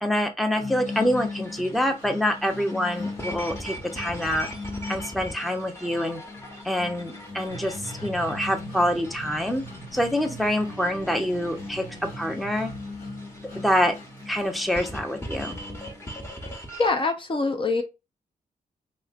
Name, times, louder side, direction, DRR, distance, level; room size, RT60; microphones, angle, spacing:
voice 1, 0.0-4.5 4.9-6.2 6.6-9.6 9.9-11.8 12.2-12.7 13.6-13.9 14.3-15.6, left 1 dB, ahead, 0.6 m, -26 dB
sound 1, 0.5-16.5, left 3 dB, 85° left, 1.8 m, -40 dB
sound 2, 0.8-16.9, equal, 15° left, 1.0 m, -42 dB
sound 3, 7.5-12.6, right 3 dB, 65° left, 1.5 m, -42 dB
voice 2, 16.8-17.8, left 3 dB, 35° left, 0.6 m, -24 dB
3.1 x 2.9 x 2.4 m
cardioid pair, 75°, 15 cm